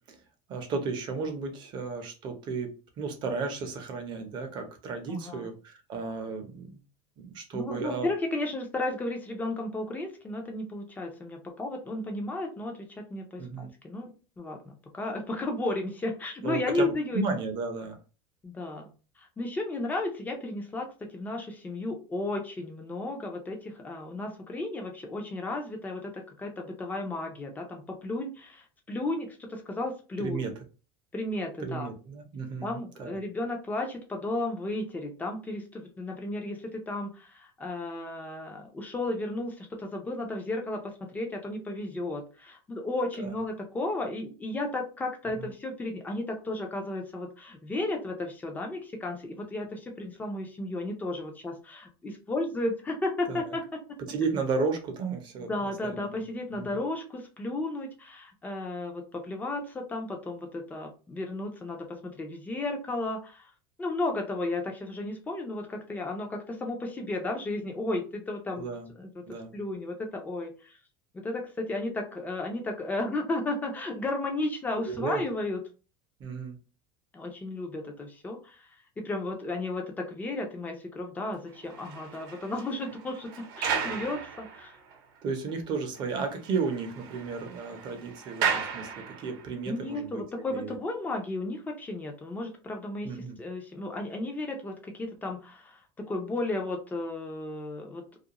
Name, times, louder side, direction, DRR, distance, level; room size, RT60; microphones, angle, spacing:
voice 1, 0.5-6.8 7.2-8.1 13.4-13.7 16.4-18.0 30.2-30.5 31.6-33.2 43.2-43.4 45.4-45.5 53.3-53.4 54.1-56.2 56.5-56.7 68.5-68.9 69.3-69.5 74.8-75.2 76.2-76.6 85.2-90.8 93.0-93.4, right 4 dB, 40° right, 5 dB, 0.7 m, -34 dB
voice 2, 5.1-5.5 7.5-17.2 18.4-30.4 31.1-31.9 32.6-54.0 55.5-63.5 63.8-68.6 69.0-69.1 69.5-70.8 71.1-75.6 77.1-84.8 89.7-98.0, left 2 dB, 15° left, 3 dB, 0.6 m, -34 dB
sound 1, 81.5-85.0 85.5-85.6 85.9-86.0 86.3-89.6, right 7 dB, 80° right, 0.7 m, -35 dB
2.4 x 2.2 x 2.8 m, 0.35 s
cardioid pair, 145°, 12 cm